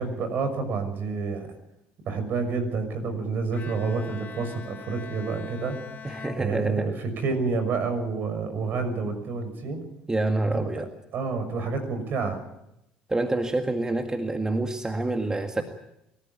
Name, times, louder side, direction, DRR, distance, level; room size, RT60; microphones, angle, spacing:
voice 1, 0.0-1.5 2.0-5.8 6.4-9.8 10.5-10.7 11.1-12.4, right 4 dB, 55° right, 8 dB, 6.4 m, -28 dB
Bowed string instrument, 3.5-7.3, left 6 dB, 45° left, 1.9 m, -43 dB
voice 2, 6.0-6.9 10.1-10.9 13.1-15.6, right 2 dB, 15° right, 6 dB, 1.9 m, -27 dB
24.0 x 14.0 x 9.8 m, 0.86 s
hypercardioid pair, 60°, 4 cm